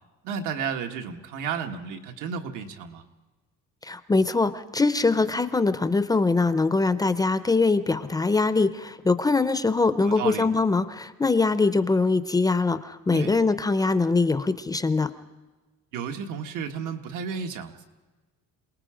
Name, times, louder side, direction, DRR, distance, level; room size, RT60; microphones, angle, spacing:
voice 1, 0.2-3.0 10.0-10.5 13.1-13.3 15.9-17.9, right 6 dB, 85° right, 4 dB, 1.8 m, -32 dB
voice 2, 3.8-15.1, left 3 dB, 15° left, 12 dB, 0.5 m, -23 dB
27.5 x 19.0 x 5.1 m, 1.2 s
cardioid pair, 165°, 30 cm